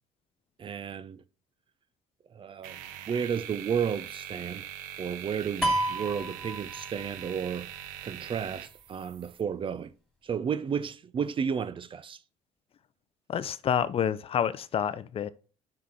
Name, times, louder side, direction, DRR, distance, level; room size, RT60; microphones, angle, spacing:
voice 1, 0.6-1.2 2.3-2.8 3.1-4.7 5.0-7.7 8.0-9.9 10.2-12.2, right 7 dB, 40° right, 0.6 m, -32 dB
sound 1, 2.6-9.4, right 10 dB, 75° right, 0.8 m, -43 dB
sound 2, 5.6-7.3, right 1 dB, ahead, 2.7 m, -30 dB
voice 2, 13.3-15.3, left 8 dB, 45° left, 0.6 m, -28 dB
5.8 x 5.0 x 5.6 m
hypercardioid pair, 65°, 14 cm